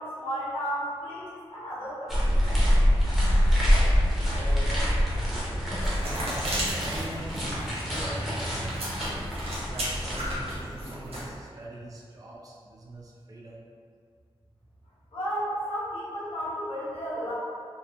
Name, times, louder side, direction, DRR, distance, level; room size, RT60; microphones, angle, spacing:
voice 1, 0.0-2.4 15.1-17.3, equal, 70° left, -9 dB, 0.9 m, -33 dB
sound 1, 2.1-10.5, equal, 5° right, 0.8 m, -25 dB
voice 2, 4.3-9.0 9.6-13.6, right 1 dB, 35° right, -4 dB, 0.3 m, -40 dB
sound 2, 5.7-11.3, right 1 dB, 75° right, 0.7 m, -35 dB
2.9 x 2.1 x 2.3 m, 2.1 s
wide cardioid pair, 75°, 10 cm